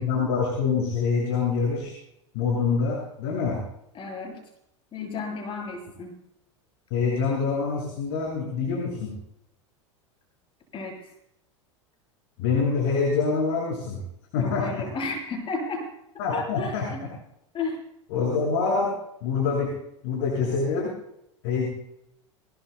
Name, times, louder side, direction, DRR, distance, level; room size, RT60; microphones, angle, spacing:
voice 1, 0.0-1.9 2.3-3.6 6.9-9.1 12.4-14.0 14.3-14.8 16.2-17.1 18.1-18.9 19.2-19.7 20.0-20.9 21.4-21.7, left 5 dB, 60° left, -3 dB, 7.0 m, -25 dB
voice 2, 3.9-4.4 4.9-6.1 10.7-11.0 14.4-15.9 16.3-17.1 17.5-17.8, left 3 dB, 35° left, 1 dB, 7.5 m, -33 dB
23.0 x 21.5 x 2.2 m, 0.80 s
figure-of-eight pair, 80°, 16 cm